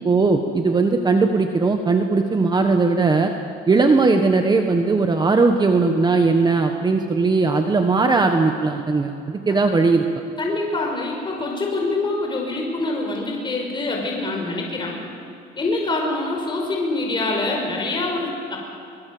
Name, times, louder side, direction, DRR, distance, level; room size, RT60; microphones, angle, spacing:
voice 1, 0.0-3.3 3.7-10.0, right 3 dB, 25° right, 5 dB, 1.4 m, -18 dB
voice 2, 10.4-15.0 15.6-18.6, left 2 dB, 25° left, 0 dB, 5.4 m, -25 dB
24.0 x 21.5 x 7.9 m, 2.6 s
cardioid pair, 110°, 17 cm